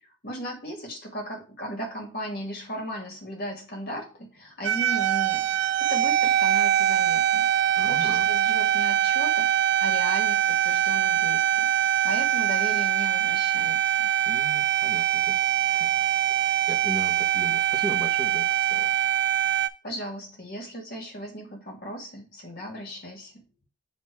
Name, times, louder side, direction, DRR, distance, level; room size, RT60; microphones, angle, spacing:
voice 1, 0.0-14.1 19.8-23.4, equal, 50° left, 2.1 m, -37 dB
sound 1, 4.6-19.7, right 11 dB, 55° right, 0.5 m, -23 dB
voice 2, 7.8-8.3 14.2-15.4 15.8-18.8, right 1 dB, ahead, 1.2 m, -38 dB
7.5 x 3.0 x 4.7 m
head